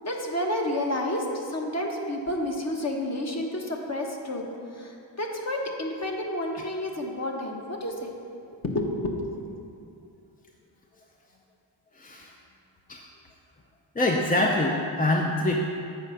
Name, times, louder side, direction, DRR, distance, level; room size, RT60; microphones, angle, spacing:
voice 1, 0.0-4.4 4.7-8.1 8.6-9.5, left 1 dB, 35° left, 1 dB, 1.2 m, -30 dB
voice 2, 11.9-12.3 12.9-13.0 13.9-15.5, left 2 dB, 20° left, 0 dB, 0.6 m, -25 dB
8.0 x 4.9 x 5.6 m, 2.5 s
cardioid pair, 80°, 44 cm